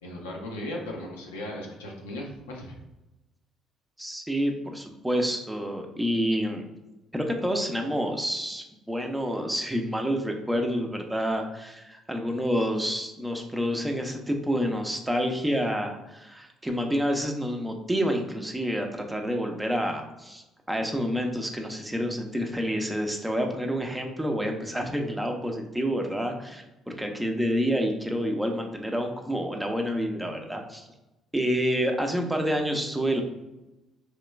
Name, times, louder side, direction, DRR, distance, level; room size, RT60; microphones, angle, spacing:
voice 1, 0.0-2.8, left 1 dB, 75° left, -1 dB, 0.6 m, -37 dB
voice 2, 4.0-6.7 7.1-30.9 31.3-33.2, equal, 10° right, 3 dB, 0.6 m, -28 dB
3.1 x 2.9 x 3.2 m, 0.99 s
figure-of-eight pair, 45°, 0 cm